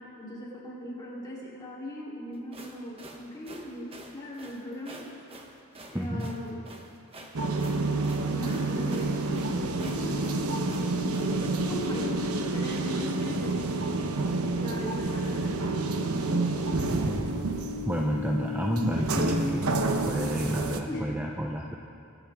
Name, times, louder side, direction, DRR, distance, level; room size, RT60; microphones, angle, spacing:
voice 1, 0.2-5.1 5.9-6.6 8.2-10.4 10.7-12.2 12.5-13.8 14.5-15.9 20.9-21.1, equal, 20° left, -7 dB, 3.8 m, -39 dB
sound 1, 2.3-11.3, right 2 dB, 25° right, 1.2 m, -47 dB
voice 2, 5.9-6.4 16.9-17.3 17.9-21.8, equal, 10° right, 0 dB, 0.7 m, -30 dB
sound 2, 7.3-20.8, right 2 dB, 85° right, 1.1 m, -29 dB
25.0 x 11.5 x 3.7 m, 2.5 s
head